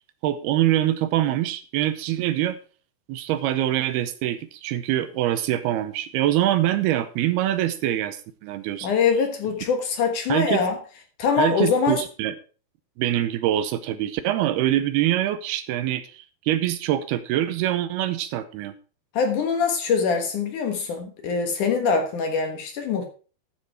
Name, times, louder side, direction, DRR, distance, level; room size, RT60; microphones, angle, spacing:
voice 1, 0.2-2.6 3.1-8.9 10.3-10.6 11.4-12.3 13.0-18.7, right 13 dB, 80° right, 12 dB, 2.6 m, -24 dB
voice 2, 8.8-10.8 11.2-12.0 19.1-23.0, left 5 dB, 60° left, 5 dB, 2.5 m, -23 dB
12.5 x 7.1 x 4.7 m, 0.37 s
omnidirectional pair, 4.7 m